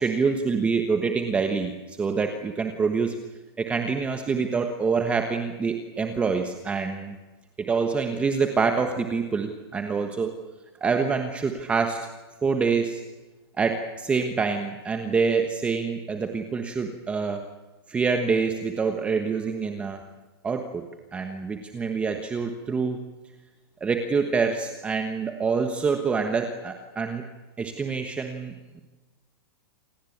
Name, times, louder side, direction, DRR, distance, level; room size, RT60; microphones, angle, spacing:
voice 1, 0.0-3.1 3.6-7.1 7.6-10.3 10.8-12.1 12.4-13.0 13.6-17.4 17.9-20.0 20.4-20.8 21.1-23.0 23.8-27.2 27.6-28.8, right 5 dB, 10° right, 6 dB, 1.3 m, -26 dB
27.5 x 19.0 x 8.7 m, 1.2 s
supercardioid pair, 170°, 13 cm